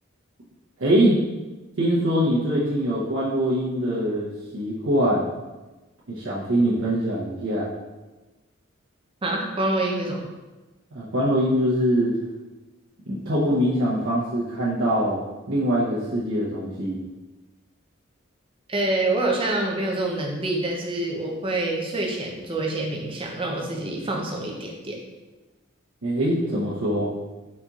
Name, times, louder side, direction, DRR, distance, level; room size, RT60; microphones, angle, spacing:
voice 1, 0.8-1.2 1.8-5.3 6.1-7.7 10.9-12.1 13.1-15.2 15.5-17.0 26.0-27.1, equal, 90° right, -8 dB, 0.9 m, -23 dB
voice 2, 9.2-10.3 18.7-25.0, right 2 dB, 25° right, -1 dB, 0.6 m, -26 dB
4.3 x 4.0 x 2.4 m, 1.1 s
head